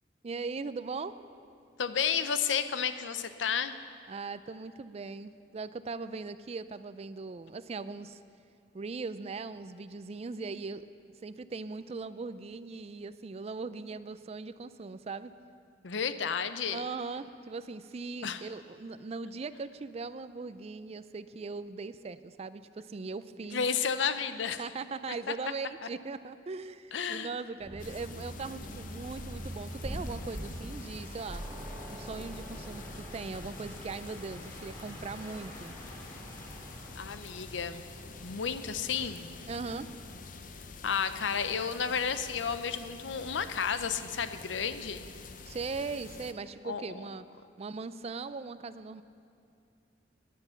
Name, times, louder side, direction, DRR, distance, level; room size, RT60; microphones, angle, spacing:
voice 1, 0.2-1.1 4.1-8.2 8.7-10.8 11.2-15.3 16.7-23.7 24.6-31.4 31.9-35.7 39.5-39.9 45.5-47.2 47.6-49.0, right 4 dB, 35° right, 14 dB, 0.4 m, -39 dB
voice 2, 1.8-3.8 15.8-16.8 18.2-18.4 23.5-24.6 25.3-25.4 26.9-27.3 37.0-37.8 38.2-39.3 40.8-45.1 46.6-46.8, left 6 dB, 85° left, 11 dB, 0.7 m, -32 dB
sound 1, 27.6-40.1, equal, 15° left, 2.9 m, -45 dB
sound 2, 27.8-46.3, left 4 dB, 45° left, 0.7 m, -48 dB
sound 3, 31.3-35.9, right 1 dB, 15° right, 2.1 m, -47 dB
16.0 x 10.5 x 5.8 m, 2.6 s
head